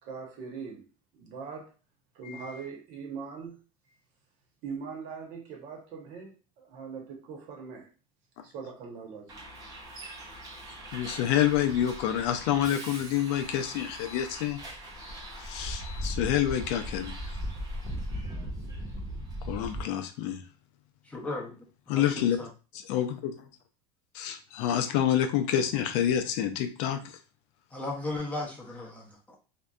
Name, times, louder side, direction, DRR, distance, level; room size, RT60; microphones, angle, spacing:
voice 1, 0.0-0.9 1.1-1.7 2.1-3.6 4.6-7.9 8.4-9.4, right 5 dB, 50° right, 0.8 m, -41 dB
Bus, 9.3-19.8, equal, 25° right, 0.7 m, -39 dB
voice 2, 10.9-14.6 15.4-17.3 19.4-20.4 21.9-22.4 22.9-23.3 24.1-27.2, left 10 dB, 65° left, 0.4 m, -28 dB
voice 3, 21.1-21.6 21.9-22.5 27.7-29.4, left 2 dB, 10° left, 0.6 m, -36 dB
2.6 x 2.2 x 2.3 m
supercardioid pair, 145°, 16 cm